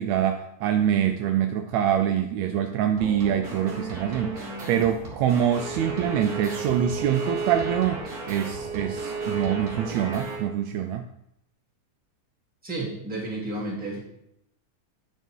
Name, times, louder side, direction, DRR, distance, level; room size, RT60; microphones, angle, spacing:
voice 1, 0.0-11.1, right 9 dB, 90° right, 6 dB, 1.5 m, -25 dB
sound 1, 3.0-10.4, right 2 dB, 40° right, 1.4 m, -37 dB
Bowed string instrument, 5.5-10.5, right 4 dB, 70° right, 1.7 m, -34 dB
voice 2, 12.6-14.0, right 2 dB, 5° right, -6 dB, 1.8 m, -31 dB
9.3 x 5.5 x 4.5 m, 0.78 s
omnidirectional pair, 3.7 m